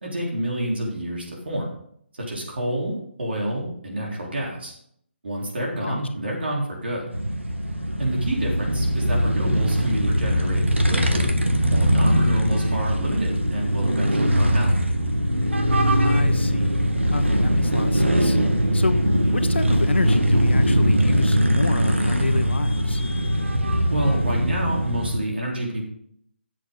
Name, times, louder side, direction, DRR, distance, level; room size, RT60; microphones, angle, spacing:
voice 1, 0.0-1.7 2.1-4.7 5.2-7.1 8.0-11.3 11.7-14.8 23.9-25.8, right 1 dB, 65° right, -2 dB, 3.8 m, -28 dB
sound 1, 7.1-25.2, equal, 85° right, 1.6 m, -21 dB
voice 2, 16.0-16.8 17.1-18.4 18.7-19.0 19.3-23.0, left 3 dB, 70° left, 9 dB, 1.2 m, -28 dB
14.0 x 7.7 x 3.9 m, 0.66 s
figure-of-eight pair, 145°, 6 cm